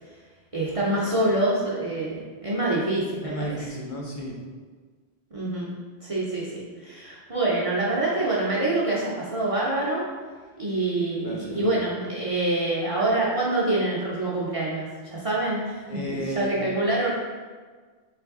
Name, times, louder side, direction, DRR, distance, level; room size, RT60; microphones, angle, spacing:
voice 1, 0.5-3.6 5.3-5.7 6.0-10.0 10.6-15.8 16.1-17.2, right 2 dB, 40° right, -6 dB, 0.6 m, -26 dB
voice 2, 3.2-4.4 11.2-11.8 15.9-16.5, equal, 55° left, -2 dB, 0.7 m, -33 dB
3.3 x 3.2 x 3.6 m, 1.5 s
omnidirectional pair, 1.1 m